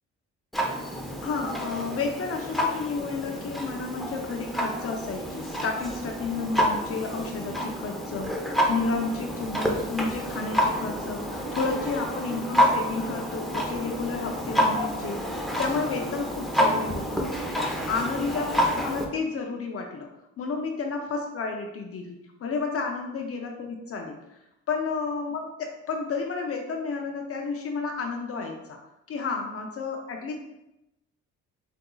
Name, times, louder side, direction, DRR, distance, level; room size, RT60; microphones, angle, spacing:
Clock, 0.5-19.1, equal, ahead, 0.7 m, -28 dB
voice 1, 0.7-17.3 17.9-20.1 20.4-24.2 24.7-28.8 29.1-30.4, left 4 dB, 50° left, 2 dB, 0.6 m, -31 dB
7.6 x 2.7 x 2.3 m, 0.91 s
cardioid pair, 90°, 30 cm